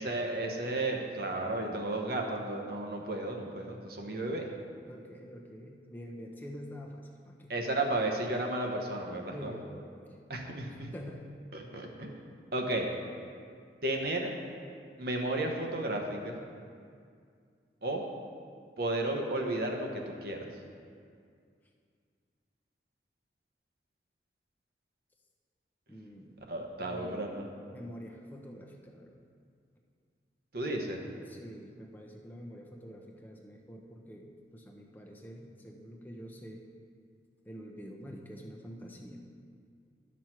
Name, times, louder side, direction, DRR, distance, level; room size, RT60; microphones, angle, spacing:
voice 1, 0.0-4.5 7.5-9.5 10.3-10.9 11.5-12.1 12.5-12.9 13.8-14.3 15.0-16.4 17.8-18.0 18.8-20.5 26.5-27.4 30.5-31.0, right 2 dB, 55° right, 1 dB, 1.0 m, -33 dB
voice 2, 4.9-7.5 9.3-10.2 10.9-11.3 25.9-26.5 26.9-27.2 27.6-29.2 30.6-30.9 31.3-36.7 37.5-39.2, equal, 10° left, 0 dB, 0.8 m, -46 dB
12.0 x 6.2 x 4.5 m, 2.2 s
head